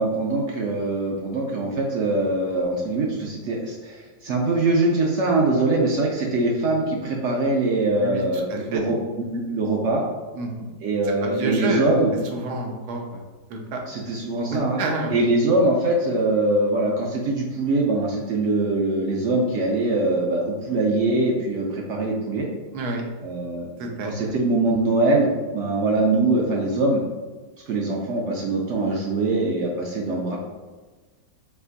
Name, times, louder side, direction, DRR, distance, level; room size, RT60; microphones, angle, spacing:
voice 1, 0.0-9.0 9.3-10.0 10.8-12.1 13.9-14.8 15.1-22.5 23.2-23.7 24.0-25.3 25.5-27.0 27.7-30.4, right 2 dB, 80° right, -2 dB, 0.6 m, -23 dB
voice 2, 8.0-8.8 10.4-10.7 11.2-11.9 12.3-13.2 13.5-13.8 14.5-15.3 22.7-23.0 23.8-24.3, right 2 dB, 65° right, 1 dB, 1.2 m, -29 dB
4.5 x 3.9 x 2.5 m, 1.3 s
omnidirectional pair, 1.9 m